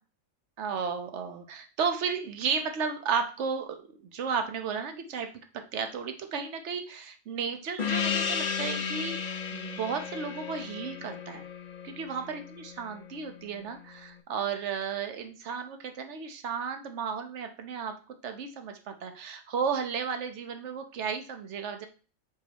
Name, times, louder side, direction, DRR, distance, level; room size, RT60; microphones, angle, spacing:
voice 1, 0.6-5.3 5.7-11.4 11.8-17.9 18.2-21.9, right 6 dB, 60° right, 6 dB, 1.2 m, -33 dB
Gong, 7.8-12.8, left 7 dB, 60° left, 0.4 m, -33 dB
7.0 x 5.0 x 3.0 m, 0.37 s
omnidirectional pair, 1.4 m